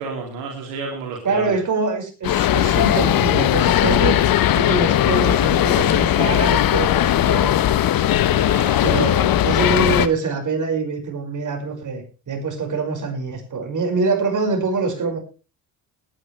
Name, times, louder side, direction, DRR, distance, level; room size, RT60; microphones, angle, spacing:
voice 1, 0.0-1.6 8.3-9.1, right 4 dB, 80° right, 0 dB, 3.0 m, -32 dB
voice 2, 1.2-4.2 4.6-7.5 8.8-15.2, right 4 dB, 45° right, 3 dB, 5.6 m, -24 dB
sound 1, 2.2-10.1, left 12 dB, 55° left, 1.1 m, -18 dB
20.0 x 10.0 x 3.3 m, 0.33 s
hypercardioid pair, 65°, 43 cm